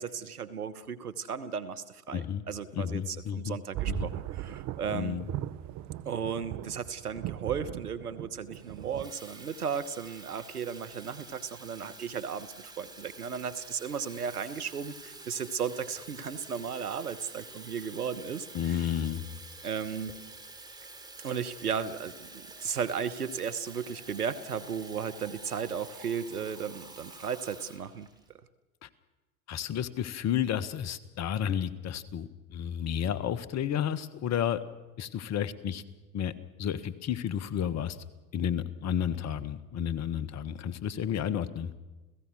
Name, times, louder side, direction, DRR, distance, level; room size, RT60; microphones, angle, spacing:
voice 1, 0.0-5.2 6.0-18.9 19.6-20.2 21.2-28.1, right 7 dB, 90° right, 13 dB, 1.2 m, -35 dB
voice 2, 2.1-2.4 2.7-3.6 3.9-4.1 4.9-5.2 18.5-19.2 28.8-28.9 29.5-34.6 35.0-35.8 36.1-36.3 36.6-38.0 38.3-41.7, left 9 dB, 35° left, 14 dB, 1.4 m, -31 dB
sound 1, 3.7-9.1, right 13 dB, 40° right, 0.9 m, -38 dB
Water tap faucet / Fill (with liquid), 8.5-28.3, right 3 dB, 10° right, 3.5 m, -48 dB
30.0 x 16.5 x 6.2 m, 1.1 s
hypercardioid pair, 85°, 44 cm